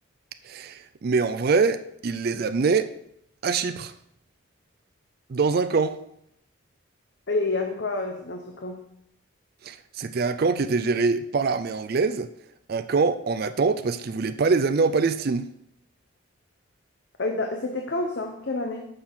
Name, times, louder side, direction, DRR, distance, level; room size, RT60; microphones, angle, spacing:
voice 1, 0.4-2.9 3.4-3.9 5.3-6.0 9.6-12.3 12.7-15.5, right 4 dB, 45° right, 0.4 m, -24 dB
voice 2, 7.3-8.8 17.2-18.9, left 2 dB, 55° left, 0.8 m, -28 dB
6.8 x 5.6 x 5.7 m
head